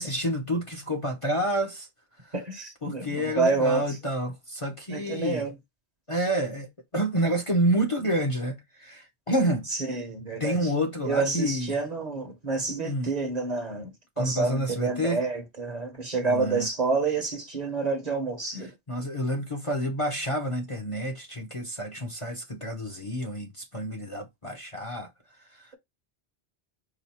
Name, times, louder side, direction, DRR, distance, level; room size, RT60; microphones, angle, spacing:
voice 1, 0.0-1.9 2.8-5.5 6.1-9.7 10.4-11.7 12.8-13.1 14.2-15.2 16.2-16.7 18.9-25.1 25.6-25.7, equal, 30° left, 0.8 m, -29 dB
voice 2, 2.3-4.0 4.9-5.5 9.9-10.7 11.0-13.9 14.2-18.7, right 3 dB, 40° right, 1.0 m, -28 dB
5.0 x 2.5 x 4.2 m
omnidirectional pair, 1.1 m